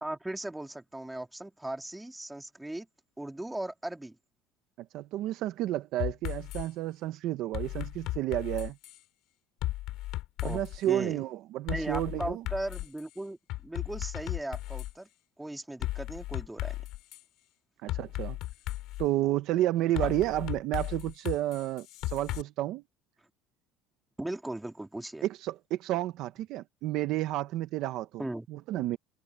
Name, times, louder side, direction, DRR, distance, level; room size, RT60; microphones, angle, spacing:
voice 1, 0.0-2.9 3.2-4.2 10.4-10.6 10.9-11.2 11.7-15.1 15.4-16.8 20.0-20.1 24.2-25.3 28.2-28.5, right 1 dB, 5° right, 2.0 m, -37 dB
voice 2, 4.8-8.8 10.4-12.4 17.8-18.4 19.0-22.8 25.2-28.2 28.5-29.0, right 15 dB, 50° right, 0.8 m, -31 dB
sound 1, 6.0-6.7 7.5-9.0 9.6-10.8 11.7-13.0 13.5-14.9 15.8-17.2 17.9-19.1 20.0-22.4, left 17 dB, 50° left, 3.6 m, -35 dB
cardioid pair, 175°, 0 cm